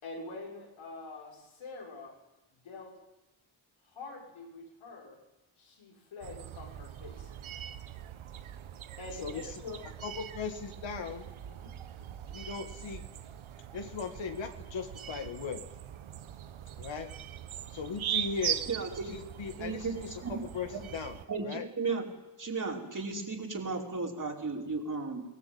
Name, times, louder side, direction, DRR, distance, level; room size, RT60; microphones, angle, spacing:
voice 1, 0.0-2.1 2.6-2.9 3.9-5.2 5.6-7.3 9.0-9.8 11.4-11.7, left 3 dB, 90° left, -1 dB, 6.1 m, -45 dB
sound 1, 6.2-21.3, right 10 dB, 85° right, 1.2 m, -41 dB
voice 2, 9.2-9.6 10.0-11.3 12.3-13.1 13.7-15.6 16.8-17.1 17.7-18.6 19.1-19.9 20.3-21.2 21.4-21.6, left 5 dB, 70° left, 5 dB, 2.2 m, -38 dB
voice 3, 18.7-19.1 19.6-20.4 21.3-22.0 22.4-25.2, right 4 dB, 40° right, 0 dB, 5.2 m, -35 dB
22.5 x 18.5 x 9.0 m, 1.0 s
cardioid pair, 80°, 47 cm